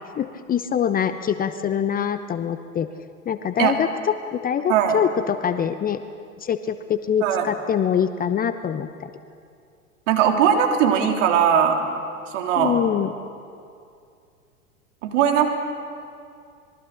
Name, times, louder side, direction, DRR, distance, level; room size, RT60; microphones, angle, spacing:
voice 1, 0.2-2.9 3.3-6.0 6.4-9.1 12.6-13.1, left 8 dB, 20° left, 11 dB, 0.8 m, -24 dB
voice 2, 10.1-11.9 12.3-12.8 15.0-15.5, right 8 dB, 60° right, 3 dB, 3.6 m, -19 dB
26.0 x 22.5 x 6.7 m, 2.4 s
figure-of-eight pair, 95°, 43 cm